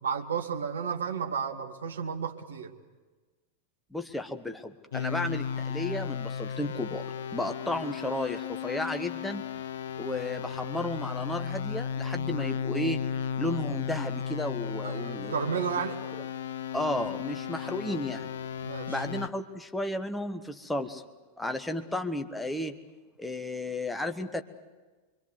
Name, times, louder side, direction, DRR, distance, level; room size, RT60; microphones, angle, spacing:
voice 1, 0.0-2.7 14.8-16.0 18.6-19.0, right 6 dB, 70° right, 4 dB, 2.3 m, -32 dB
voice 2, 3.9-7.1 7.3-9.4 10.0-13.0 13.4-15.4 16.7-18.3 18.9-21.0 21.4-22.7 23.2-24.4, left 1 dB, 5° left, 6 dB, 1.4 m, -33 dB
sound 1, 4.9-19.3, left 7 dB, 60° left, 0.8 m, -35 dB
25.5 x 24.5 x 8.1 m, 1.3 s
figure-of-eight pair, 90°, 0 cm